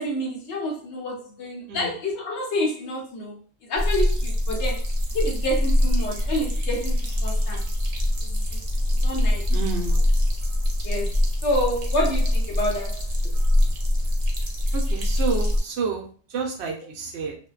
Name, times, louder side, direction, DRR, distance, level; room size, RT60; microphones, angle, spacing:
voice 1, 0.0-3.4 3.7-4.8 5.1-6.9 7.2-7.6 8.2-8.4 9.0-9.5 10.8-11.1 11.4-13.3, left 1 dB, 70° left, -1 dB, 1.0 m, -28 dB
voice 2, 1.7-2.0 9.5-10.0 14.7-17.4, right 5 dB, 70° right, 1 dB, 0.8 m, -30 dB
sound 1, 3.8-15.6, left 1 dB, 50° right, 0.4 m, -23 dB
2.5 x 2.1 x 2.3 m, 0.41 s
omnidirectional pair, 1.2 m